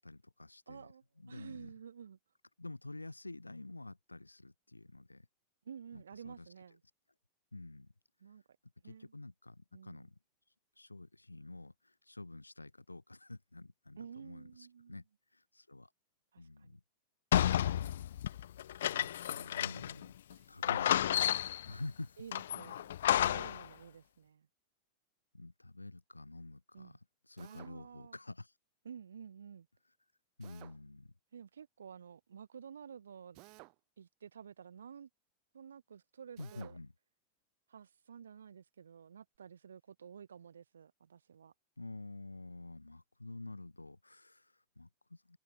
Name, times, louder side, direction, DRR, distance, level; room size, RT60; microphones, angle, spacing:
voice 1, 0.0-0.9 1.2-1.7 2.6-5.3 5.9-6.5 7.5-7.9 8.8-10.2 10.8-15.0 15.3-15.9 16.4-16.8 18.8-20.1 20.5-21.3 21.6-22.2 25.3-27.0 27.2-28.5 30.4-31.1 36.4-36.9 41.8-45.4, left 2 dB, 85° left, 3.3 m, -49 dB
voice 2, 0.7-2.2 5.6-6.8 8.2-8.4 8.8-9.1 9.7-10.1 14.0-15.0 16.3-16.8 20.3-20.5 21.7-21.8 22.2-22.9 23.2-24.5 26.7-27.0 27.4-28.2 28.8-29.7 31.3-33.4 34.0-35.1 35.5-36.8 37.7-41.5, right 7 dB, 70° right, 3.2 m, -51 dB
sound 1, 17.3-20.1 20.3-20.4 20.6-21.7 22.3-23.7, left 11 dB, 60° left, 1.3 m, -31 dB
Drill, 27.4-27.8 30.4-30.8 33.3-33.8 36.4-36.8, right 31 dB, 45° right, 4.3 m, -56 dB
open air
figure-of-eight pair, 90°, 0 cm